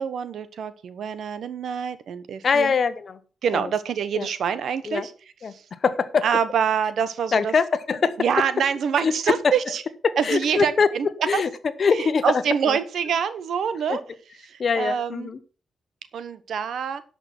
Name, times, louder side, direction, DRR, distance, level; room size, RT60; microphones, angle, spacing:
voice 1, 0.0-2.7 3.4-5.1 5.5-5.6 6.2-7.5 8.2-9.8 10.2-11.1 11.3-11.4 11.9-14.0 14.4-15.3 16.1-17.0, right 7 dB, 70° right, 14 dB, 1.0 m, -26 dB
voice 2, 2.4-3.2 3.6-3.7 4.1-4.3 4.9-5.1 5.4-5.5 5.8-6.2 7.3-8.1 9.0-9.5 10.0-10.9 11.3-11.5 11.8-12.8 13.9-14.0 14.6-15.4, left 5 dB, 50° left, 13 dB, 1.0 m, -23 dB
11.0 x 5.8 x 6.0 m, 0.39 s
cardioid pair, 90°, 0 cm